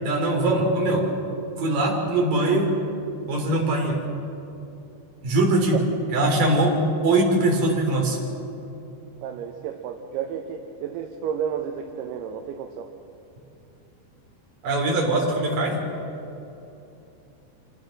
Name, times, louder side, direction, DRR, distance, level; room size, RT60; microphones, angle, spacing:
voice 1, 0.0-1.1 1.6-2.8 3.3-4.0 5.2-5.8 6.1-6.8 7.0-8.2 14.6-15.8, right 2 dB, 50° right, -1 dB, 4.8 m, -21 dB
voice 2, 9.2-12.9, right 8 dB, 75° right, 4 dB, 2.7 m, -32 dB
27.0 x 16.5 x 6.5 m, 2.8 s
omnidirectional pair, 5.1 m